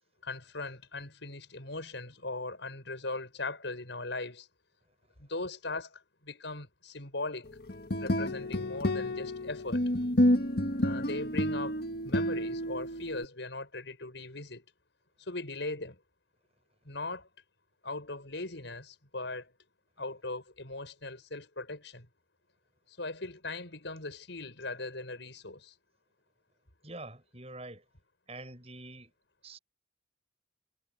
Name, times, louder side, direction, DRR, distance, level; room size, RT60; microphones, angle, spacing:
voice 1, 0.2-4.5 5.2-7.5 8.0-9.9 10.8-11.8 12.0-14.6 15.2-16.0 16.8-17.3 17.8-19.5 20.0-22.1 22.9-25.7, left 2 dB, 70° left, 5.7 m, -39 dB
sound 1, 7.7-13.3, left 1 dB, 55° left, 1.8 m, -29 dB
voice 2, 26.8-27.8 28.3-29.1 29.4-29.6, right 2 dB, 35° right, 7.1 m, -45 dB
head